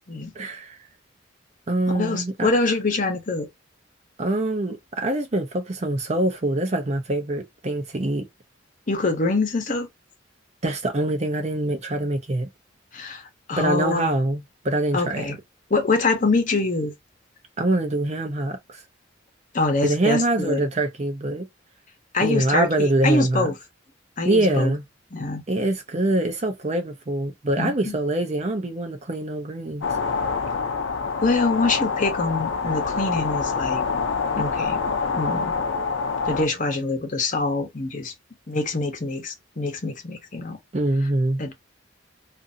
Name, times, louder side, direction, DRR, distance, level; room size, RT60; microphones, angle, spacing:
voice 1, 0.4-0.8 1.7-2.5 4.2-8.3 10.6-12.5 13.6-15.3 17.6-18.8 19.8-21.5 22.2-23.5 24.2-24.8 25.5-29.9 40.7-41.4, right 2 dB, 35° right, 0.6 m, -24 dB
voice 2, 1.9-3.5 8.9-9.9 12.9-14.1 14.9-15.4 15.7-16.9 19.5-20.6 22.1-23.5 24.2-24.7 25.1-25.4 27.6-28.0 31.2-33.9 34.4-34.8 35.1-35.5 36.2-38.1 38.5-40.6 41.4-41.5, left 3 dB, 45° left, 0.9 m, -24 dB
sound 1, 29.8-36.5, left 5 dB, 80° left, 0.5 m, -26 dB
2.6 x 2.5 x 2.6 m
head